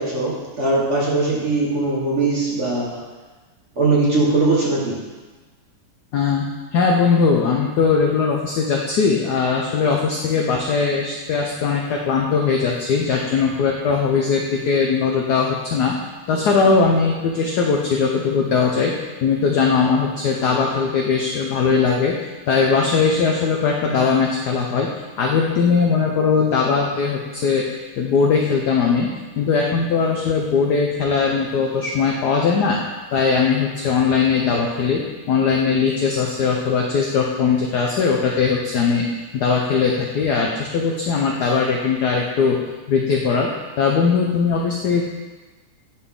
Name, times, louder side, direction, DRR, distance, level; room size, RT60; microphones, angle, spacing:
voice 1, 0.0-3.0 3.8-5.0, right 3 dB, 40° right, -6 dB, 1.4 m, -20 dB
voice 2, 6.1-6.5 6.7-15.9 16.3-18.9 19.2-22.2 22.5-24.9 25.2-32.8 33.1-39.1 39.3-42.6 42.9-43.5 43.8-45.0, left 5 dB, 75° left, 0 dB, 0.9 m, -20 dB
10.0 x 4.1 x 3.6 m, 1.3 s
omnidirectional pair, 2.4 m